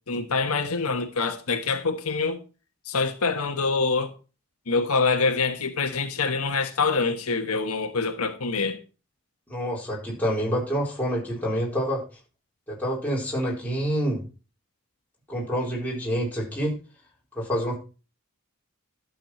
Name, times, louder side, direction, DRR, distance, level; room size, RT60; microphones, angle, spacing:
voice 1, 0.1-2.4 2.9-4.1 4.7-8.8, left 4 dB, 80° left, 1.3 m, -25 dB
voice 2, 9.5-12.0 12.7-14.2 15.3-16.8 17.4-17.8, equal, 5° left, 4.0 m, -27 dB
12.5 x 6.6 x 4.3 m
head